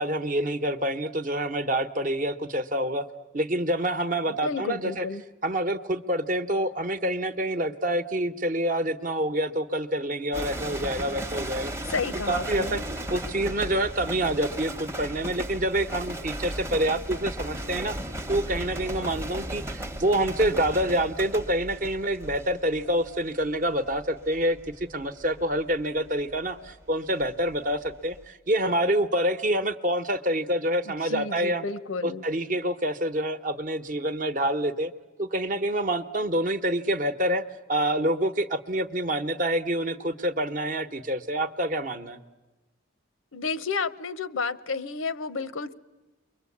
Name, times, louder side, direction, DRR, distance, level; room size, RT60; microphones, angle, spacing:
voice 1, 0.0-3.1 3.3-5.0 5.4-11.7 12.3-12.8 13.1-18.0 18.3-31.6 32.0-34.9 35.2-37.4 37.7-42.2, right 1 dB, 40° right, 10 dB, 0.9 m, -27 dB
voice 2, 4.4-5.2 11.9-12.8 30.9-32.2 43.3-45.7, left 4 dB, 85° left, 16 dB, 0.8 m, -31 dB
sound 1, 10.3-27.6 27.8-28.3, right 1 dB, 15° right, 0.9 m, -36 dB
29.5 x 23.0 x 8.5 m, 1.2 s
head